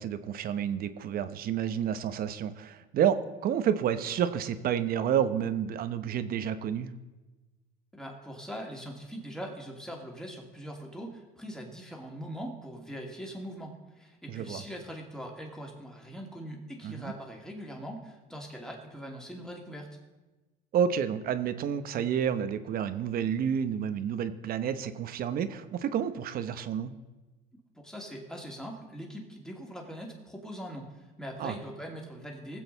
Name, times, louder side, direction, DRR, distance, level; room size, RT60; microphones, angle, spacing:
voice 1, 0.0-6.9 14.3-14.6 16.8-17.1 20.7-26.9 31.4-31.5, right 8 dB, 50° right, 11 dB, 0.9 m, -30 dB
voice 2, 7.9-19.9 27.8-32.6, equal, 5° left, 0 dB, 2.5 m, -42 dB
20.5 x 7.7 x 4.0 m, 1.1 s
cardioid pair, 110°, 19 cm